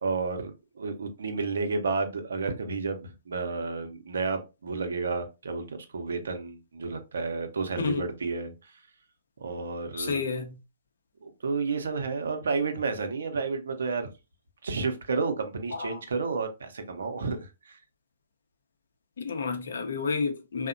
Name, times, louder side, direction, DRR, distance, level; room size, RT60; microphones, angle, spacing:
voice 1, 0.0-8.5 9.4-10.2 11.2-14.1 14.6-17.8, right 4 dB, 70° right, 0.5 m, -31 dB
voice 2, 10.0-10.6 15.7-15.9 19.2-20.7, left 5 dB, 70° left, 0.6 m, -30 dB
2.7 x 2.1 x 2.5 m
figure-of-eight pair, 125°, 0 cm